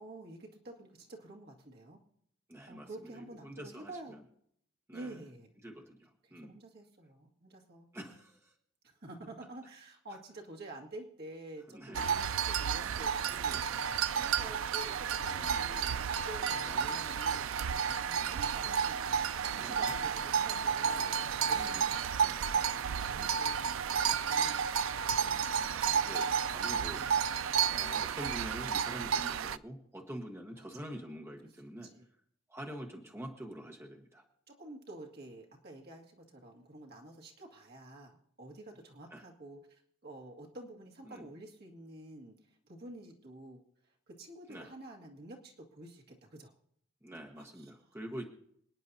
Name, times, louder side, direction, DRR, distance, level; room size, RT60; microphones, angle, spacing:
voice 1, 0.0-2.0 2.7-4.2 4.9-5.5 6.3-8.1 8.8-13.6 14.2-19.1 19.5-22.4 22.8-23.8 24.3-25.6 30.6-30.9 31.8-32.0 34.5-46.6 47.4-47.7, right 2 dB, 55° right, 0 dB, 1.9 m, -50 dB
voice 2, 2.5-4.2 4.9-5.2 5.6-6.6 7.9-8.5 11.7-12.1 13.5-13.7 15.2-15.7 16.6-16.8 18.2-18.4 19.6-19.9 21.5-22.4 23.0-24.1 25.5-27.1 27.7-31.9 32.5-34.2 39.1-39.2 41.0-41.2 44.5-44.7 47.0-48.2, equal, 15° right, 0 dB, 1.3 m, -46 dB
sound 1, 11.9-29.6, right 7 dB, 85° right, 0.4 m, -32 dB
27.5 x 9.8 x 2.7 m, 0.69 s
head